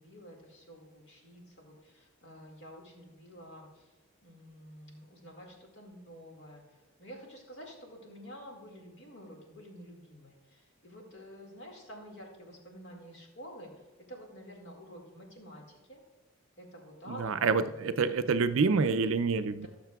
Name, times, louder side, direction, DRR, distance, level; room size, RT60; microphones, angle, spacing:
voice 1, 0.0-3.9 4.2-15.6 15.9-16.0 16.6-18.4, equal, 50° left, 0 dB, 2.0 m, -50 dB
voice 2, 17.1-19.7, right 4 dB, 60° right, 10 dB, 0.4 m, -27 dB
17.5 x 6.6 x 2.3 m, 1.2 s
head